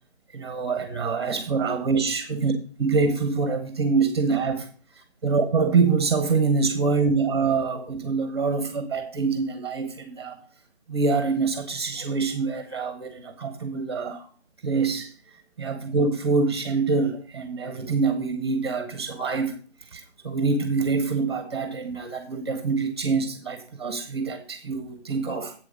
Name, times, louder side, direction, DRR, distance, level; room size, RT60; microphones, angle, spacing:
voice 1, 0.3-2.5 2.8-4.7 5.2-10.4 10.9-14.3 14.6-15.1 15.6-19.6 19.9-25.5, right 4 dB, 25° right, 1.1 m, -25 dB
8.1 x 7.7 x 5.1 m
figure-of-eight pair, 165°, 33 cm